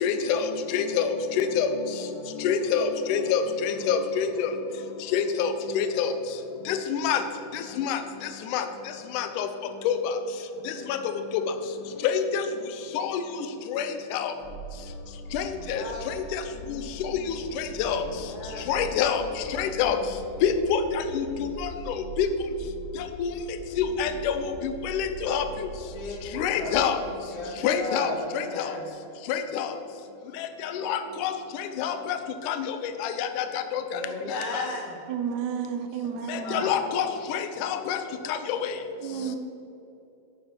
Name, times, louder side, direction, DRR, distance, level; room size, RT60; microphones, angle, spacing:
voice 1, 0.0-1.7 2.4-4.5 5.1-6.1 6.7-7.2 7.5-8.0 8.5-8.7 9.1-9.5 9.8-10.1 10.7-11.0 11.3-11.4 12.0-12.5 12.9-13.2 13.7-14.3 15.3-15.8 16.3-16.4 16.7-18.0 18.7-19.2 19.6-20.0 20.4-22.3 23.2-23.3 23.8-25.5 26.3-27.0 27.6-28.7 29.3-29.7 30.4-31.3 31.6-32.2 32.4-34.0 34.5-34.7 36.3-38.0 38.3-38.7, left 7 dB, 85° left, 8 dB, 2.1 m, -27 dB
sound 1, 14.4-27.0, right 3 dB, 35° left, 2.2 m, -42 dB
voice 2, 15.5-16.1 17.8-18.7 25.9-26.8 27.3-28.9 33.9-35.0 36.4-36.7, left 2 dB, 65° left, -1 dB, 2.6 m, -36 dB
voice 3, 35.1-36.6 39.0-39.4, right 8 dB, 75° right, 6 dB, 1.9 m, -31 dB
10.5 x 8.5 x 4.4 m, 2.9 s
omnidirectional pair, 3.7 m